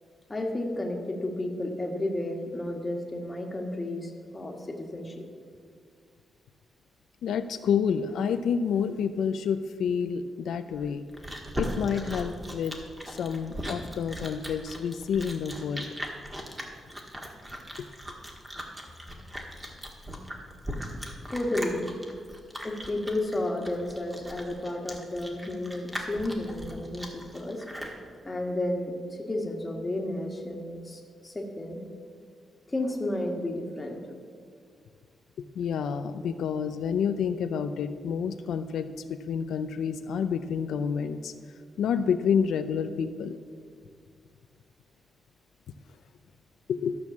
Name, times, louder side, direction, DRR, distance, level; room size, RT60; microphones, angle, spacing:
voice 1, 0.3-5.2 21.3-21.9 22.6-27.7 28.2-31.8 32.7-34.0, left 1 dB, 15° left, 2 dB, 1.6 m, -32 dB
voice 2, 7.2-11.0 11.6-12.8 13.1-15.9 17.8-17.9 35.4-41.3 41.8-43.4 46.7-47.0, left 7 dB, 85° left, 9 dB, 0.5 m, -29 dB
Chewing mastication, 10.7-28.0, equal, 10° right, 1.6 m, -39 dB
13.0 x 6.3 x 7.1 m, 2.1 s
cardioid pair, 130°, 0 cm